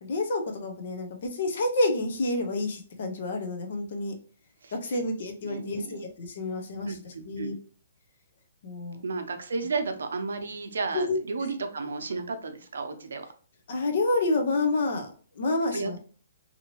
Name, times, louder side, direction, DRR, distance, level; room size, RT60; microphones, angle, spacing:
voice 1, 0.0-4.1 4.7-7.5 8.6-9.0 10.9-11.2 13.7-16.0, left 2 dB, 45° left, 4 dB, 0.6 m, -29 dB
voice 2, 5.4-6.0 6.9-7.5 9.0-13.2 15.7-16.0, right 4 dB, 85° right, 6 dB, 0.6 m, -33 dB
2.8 x 2.6 x 2.9 m, 0.42 s
hypercardioid pair, 180°, 0 cm